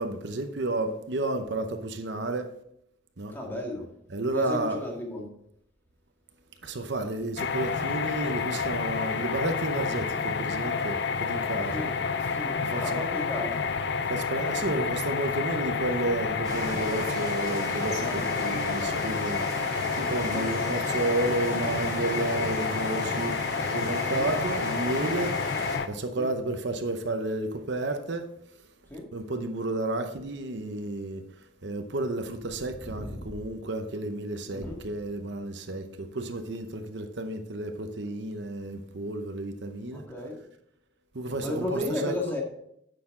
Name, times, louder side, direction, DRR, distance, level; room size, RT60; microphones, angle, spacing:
voice 1, 0.0-2.5 3.2-3.3 4.1-4.8 6.6-11.9 12.6-13.0 14.0-23.4 23.6-25.4 25.9-28.3 29.1-31.2 31.6-40.0 41.1-42.3, right 2 dB, 65° right, 0.8 m, -32 dB
voice 2, 3.3-3.9 4.3-5.3 11.7-11.9 12.3-13.6 17.8-18.4 20.2-20.6 24.0-24.3 26.2-26.3 28.9-29.1 32.9-33.2 34.5-34.8 39.9-40.4 41.4-42.4, left 1 dB, 10° left, 1.8 m, -34 dB
sound 1, 7.4-25.9, left 5 dB, 60° left, 0.5 m, -29 dB
sound 2, 16.4-25.8, right 1 dB, 20° right, 2.0 m, -36 dB
9.5 x 6.8 x 3.7 m
head